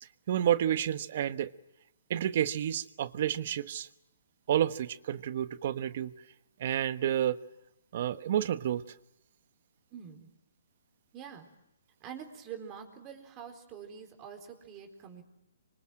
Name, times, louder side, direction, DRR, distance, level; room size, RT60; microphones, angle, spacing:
voice 1, 0.0-1.5 2.1-3.9 4.5-6.1 6.6-7.4 7.9-8.8, right 10 dB, 45° right, 1.2 m, -30 dB
voice 2, 9.9-10.3 11.1-11.5 12.0-15.2, right 8 dB, 20° right, 4.1 m, -45 dB
26.5 x 25.0 x 7.7 m
hypercardioid pair, 160°, 0 cm